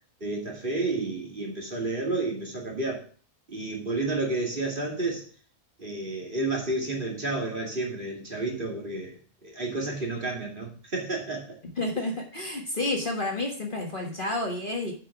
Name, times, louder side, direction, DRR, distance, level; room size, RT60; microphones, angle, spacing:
voice 1, 0.2-3.0 3.5-5.3 5.8-9.2 9.4-11.6, right 2 dB, 35° right, -1 dB, 2.5 m, -31 dB
voice 2, 11.8-14.9, left 2 dB, 35° left, 0 dB, 1.6 m, -30 dB
8.0 x 5.6 x 5.9 m, 0.41 s
omnidirectional pair, 1.6 m